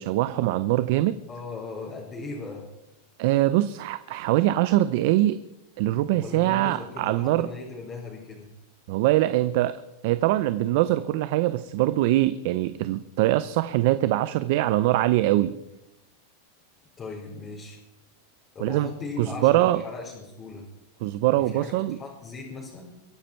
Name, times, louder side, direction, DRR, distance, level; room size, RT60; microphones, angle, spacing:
voice 1, 0.0-1.2 3.2-5.4 5.8-7.5 8.9-15.5 18.6-18.9 19.2-19.8 21.0-22.0, right 15 dB, 60° right, 13 dB, 0.6 m, -23 dB
voice 2, 1.3-2.7 6.2-8.5 17.0-17.8 18.5-20.7 21.3-22.9, left 3 dB, 25° left, -4 dB, 4.4 m, -38 dB
23.5 x 10.5 x 4.5 m, 0.91 s
supercardioid pair, 125°, 0 cm